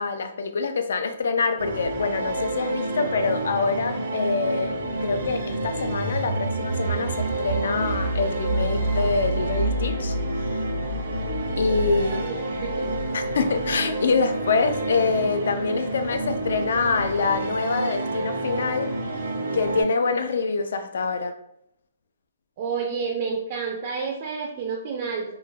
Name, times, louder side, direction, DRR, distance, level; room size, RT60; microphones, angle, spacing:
voice 1, 0.0-4.7 5.0-10.1 11.6-12.3 13.1-18.9 19.5-21.3, left 4 dB, 70° left, 7 dB, 0.3 m, -25 dB
sound 1, 1.6-19.8, right 2 dB, 85° right, 0.6 m, -29 dB
sound 2, 5.4-14.1, right 1 dB, 90° left, 0.9 m, -30 dB
voice 2, 11.4-13.1 22.6-25.3, right 5 dB, 35° right, 1 dB, 0.3 m, -30 dB
3.1 x 2.1 x 2.3 m, 0.77 s
hypercardioid pair, 170°, 0 cm